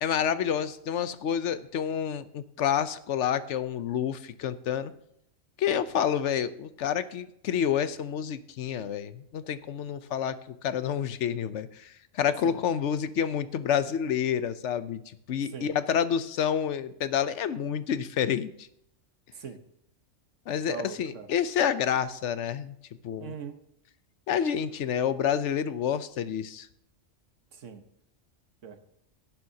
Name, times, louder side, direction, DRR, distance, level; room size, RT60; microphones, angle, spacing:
voice 1, 0.0-4.9 5.6-15.0 15.3-18.5 20.5-22.7 23.0-23.3 24.3-26.7, left 8 dB, 75° left, 13 dB, 1.0 m, -28 dB
voice 2, 20.7-21.3 23.2-23.6 27.5-27.8 28.6-28.8, right 7 dB, 80° right, 7 dB, 1.4 m, -40 dB
17.5 x 10.5 x 2.8 m, 0.74 s
omnidirectional pair, 1.3 m